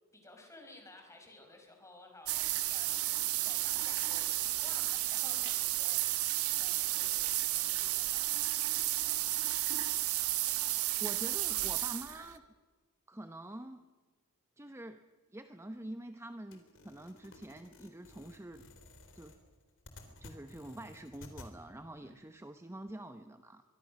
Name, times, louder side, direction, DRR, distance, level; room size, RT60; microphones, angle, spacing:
voice 1, 0.1-8.7 9.0-9.4 22.0-22.3, left 2 dB, 15° left, 3 dB, 5.3 m, -56 dB
sound 1, 2.3-12.3, right 15 dB, 70° right, 1.2 m, -32 dB
voice 2, 11.0-12.4 13.1-13.8 14.6-15.0 15.3-18.6 19.1-19.3 20.2-23.6, right 1 dB, 10° right, 8 dB, 0.8 m, -46 dB
sound 2, 16.5-21.5, left 2 dB, 60° left, 3.5 m, -54 dB
24.5 x 22.5 x 6.4 m, 1.5 s
head